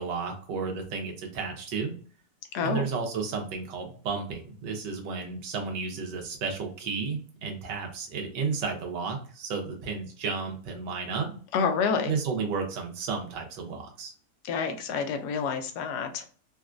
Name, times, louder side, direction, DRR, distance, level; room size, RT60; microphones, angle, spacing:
voice 1, 0.0-1.9 2.6-11.4 12.1-14.1, right 5 dB, 90° right, 2 dB, 1.5 m, -32 dB
voice 2, 11.5-12.1 14.4-16.3, left 5 dB, 75° left, 6 dB, 1.1 m, -28 dB
4.0 x 2.2 x 2.4 m, 0.43 s
omnidirectional pair, 1.8 m